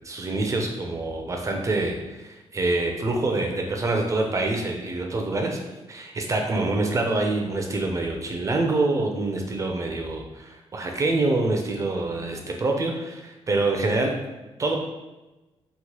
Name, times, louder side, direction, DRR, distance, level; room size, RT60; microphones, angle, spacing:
voice 1, 0.0-5.6 5.9-14.1 14.6-14.8, right 2 dB, 30° right, 2 dB, 0.3 m, -26 dB
2.9 x 2.1 x 2.8 m, 1.1 s
cardioid pair, 125°, 11 cm